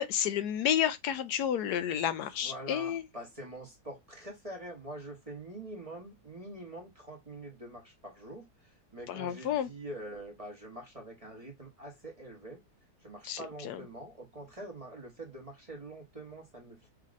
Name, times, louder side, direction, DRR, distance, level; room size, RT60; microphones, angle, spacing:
voice 1, 0.0-3.0 9.1-9.7 13.2-13.8, left 9 dB, 80° left, 1.2 m, -31 dB
voice 2, 2.4-8.5 8.9-12.6 13.0-16.9, right 1 dB, 25° right, 1.0 m, -45 dB
6.1 x 2.8 x 2.4 m
omnidirectional pair, 1.7 m